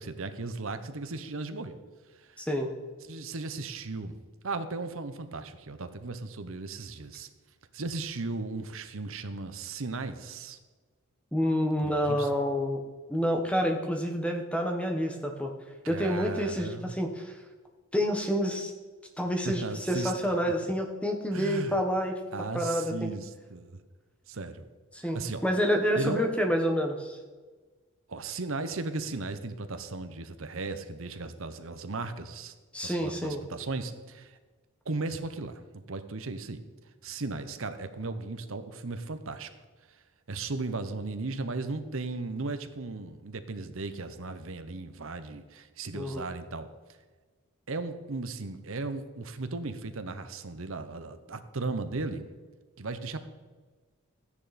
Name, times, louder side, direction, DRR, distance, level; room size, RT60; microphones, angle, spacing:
voice 1, 0.0-1.8 2.1-2.4 3.0-4.2 4.4-7.3 7.7-10.6 11.8-12.3 15.8-16.9 19.4-20.4 21.3-21.8 22.3-23.8 24.3-24.7 25.0-25.4 25.9-26.3 28.1-32.5 32.8-34.4 34.8-36.6 37.0-39.5 39.9-40.0 40.3-46.7 47.7-52.3 52.8-53.3, right 3 dB, 65° right, 10 dB, 0.9 m, -36 dB
voice 2, 2.4-2.7 11.3-12.8 13.1-15.5 15.9-17.3 17.9-18.7 19.2-22.2 22.5-23.1 24.9-27.2 32.7-33.4 45.9-46.3, equal, 5° left, 3 dB, 1.2 m, -28 dB
13.5 x 9.8 x 4.2 m, 1.3 s
head